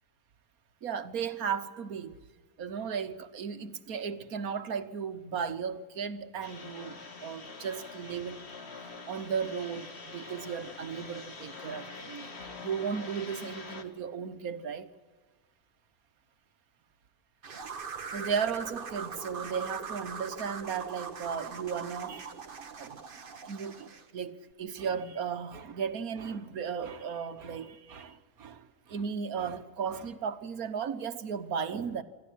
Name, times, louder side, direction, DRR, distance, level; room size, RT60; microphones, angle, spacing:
voice 1, 0.8-2.2 2.6-8.5 9.1-12.3 12.6-14.9 18.1-22.4 22.8-23.0 23.4-32.0, right 6 dB, 70° right, 1.6 m, -35 dB
sound 1, 6.4-13.8, left 4 dB, 45° left, 2.0 m, -45 dB
sound 2, 17.4-24.1, right 5 dB, 40° right, 1.1 m, -41 dB
27.0 x 13.5 x 9.9 m
omnidirectional pair, 1.6 m